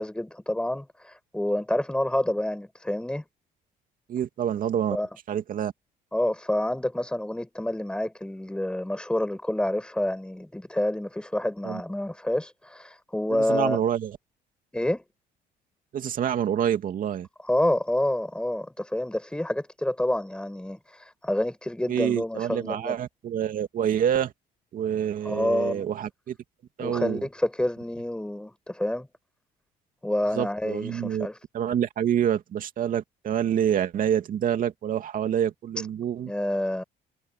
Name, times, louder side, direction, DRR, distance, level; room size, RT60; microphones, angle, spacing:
voice 1, 0.0-3.3 4.9-5.1 6.1-13.8 14.7-15.0 17.5-23.0 25.3-25.8 26.8-29.1 30.0-31.4 36.3-36.8, left 1 dB, 5° left, 7.0 m, -28 dB
voice 2, 4.1-5.0 5.3-5.7 11.6-11.8 13.3-14.2 15.9-17.3 21.9-24.3 24.7-26.4 26.8-27.3 30.3-31.3 31.5-36.3, right 9 dB, 55° right, 2.5 m, -27 dB
cardioid pair, 110°, 17 cm